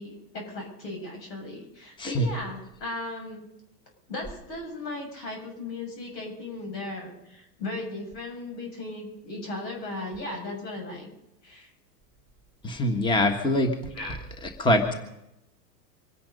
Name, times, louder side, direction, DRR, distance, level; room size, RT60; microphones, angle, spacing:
voice 1, 0.0-3.5 4.1-11.1 11.4-11.7 13.9-14.2, left 2 dB, 80° left, 2 dB, 7.3 m, -36 dB
voice 2, 12.6-13.7 14.4-14.9, left 1 dB, 10° left, 5 dB, 1.6 m, -23 dB
25.5 x 10.5 x 5.4 m, 0.87 s
hypercardioid pair, 125°, 49 cm